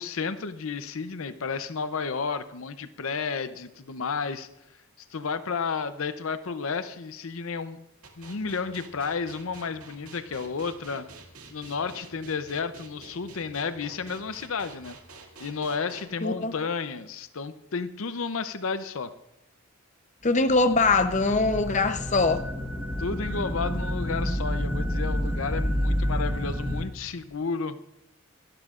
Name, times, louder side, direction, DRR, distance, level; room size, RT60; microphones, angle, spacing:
voice 1, 0.0-4.5 5.0-7.8 8.2-11.1 11.5-15.0 15.4-19.1 23.0-27.8, left 5 dB, 70° left, 0.6 m, -32 dB
sound 1, 8.0-16.0, right 3 dB, 90° right, 2.1 m, -47 dB
voice 2, 16.2-16.5 20.2-22.4, left 3 dB, 35° left, 0.7 m, -22 dB
sound 2, 20.4-26.8, equal, 10° right, 1.5 m, -29 dB
24.0 x 12.5 x 2.5 m
head